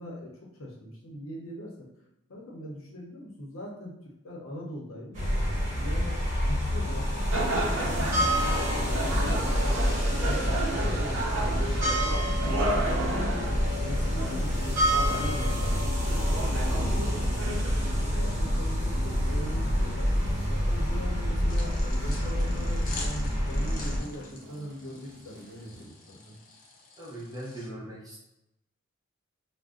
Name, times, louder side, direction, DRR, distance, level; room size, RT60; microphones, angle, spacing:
voice 1, 0.0-1.9 2.3-3.9 4.2-5.2 5.7-13.4 13.8-17.6 18.0-20.1 20.5-26.4, equal, 85° left, -2 dB, 0.8 m, -41 dB
sound 1, 5.1-24.0, equal, 40° right, 1.1 m, -27 dB
sound 2, 7.3-25.9, right 2 dB, 80° right, 0.5 m, -36 dB
sound 3, 21.5-27.7, left 3 dB, 45° left, 0.5 m, -46 dB
voice 2, 27.0-28.2, right 1 dB, 20° right, -5 dB, 0.8 m, -40 dB
2.4 x 2.2 x 3.7 m, 0.86 s
head